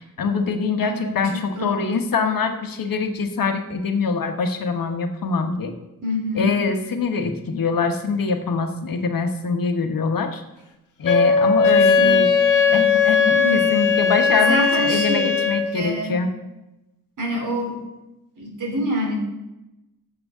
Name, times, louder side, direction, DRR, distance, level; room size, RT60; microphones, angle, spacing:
voice 1, 0.0-5.7 6.3-10.4 11.0-12.3 12.7-16.3, left 4 dB, 85° left, 5 dB, 1.2 m, -24 dB
voice 2, 0.8-2.0 6.0-6.5 11.7-12.3 13.2-13.6 14.3-15.3 15.6-16.2 17.2-17.8 18.4-19.2, equal, 65° right, -1 dB, 3.2 m, -27 dB
Wind instrument woodwind instrument, 11.0-15.7, left 5 dB, 65° left, 1.2 m, -18 dB
13.0 x 7.8 x 3.6 m, 0.95 s
wide cardioid pair, 175°, 33 cm